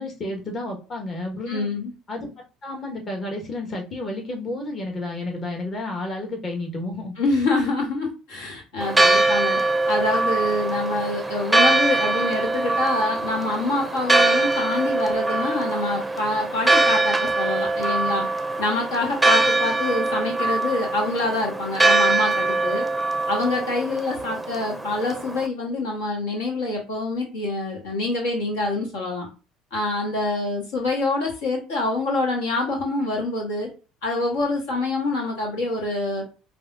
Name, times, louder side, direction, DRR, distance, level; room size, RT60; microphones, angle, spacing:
voice 1, 0.0-1.7 2.1-2.3 2.6-7.1, left 2 dB, 40° left, 1 dB, 1.3 m, -31 dB
voice 2, 1.5-1.9 7.2-9.6 9.9-18.3 18.6-22.9 23.3-29.3 29.7-33.7 34.0-36.2, left 2 dB, 75° left, 0 dB, 1.3 m, -26 dB
Church bell, 8.8-25.5, right 2 dB, 10° right, 0.6 m, -22 dB
5.2 x 2.5 x 2.5 m, 0.33 s
hypercardioid pair, 65°, 0 cm